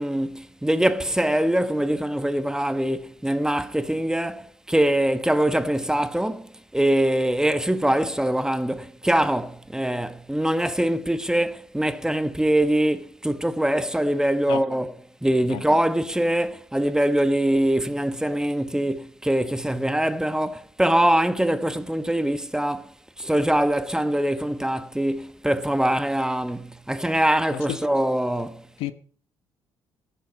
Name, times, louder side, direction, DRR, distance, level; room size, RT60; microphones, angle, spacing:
voice 1, 0.0-14.9 15.2-28.7, right 1 dB, 5° right, 1.2 m, -23 dB
voice 2, 14.5-14.6 15.5-15.6 27.5-27.8 28.8-28.9, left 14 dB, 70° left, 1.0 m, -30 dB
15.0 x 10.5 x 5.3 m
hypercardioid pair, 50°, 10 cm